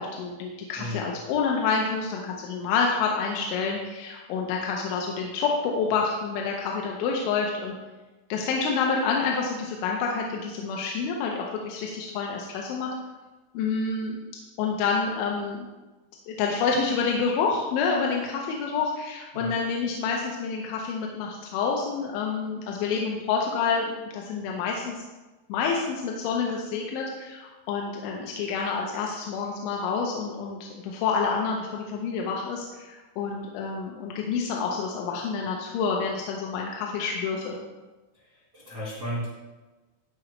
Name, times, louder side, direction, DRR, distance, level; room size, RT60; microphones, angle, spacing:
voice 1, 0.0-7.7 8.3-12.9 13.5-14.2 14.6-15.7 16.3-24.9 25.5-37.5, left 5 dB, 90° left, 0 dB, 3.2 m, -28 dB
voice 2, 38.5-39.3, equal, 75° right, -8 dB, 0.9 m, -33 dB
14.5 x 4.9 x 3.2 m, 1.2 s
omnidirectional pair, 5.2 m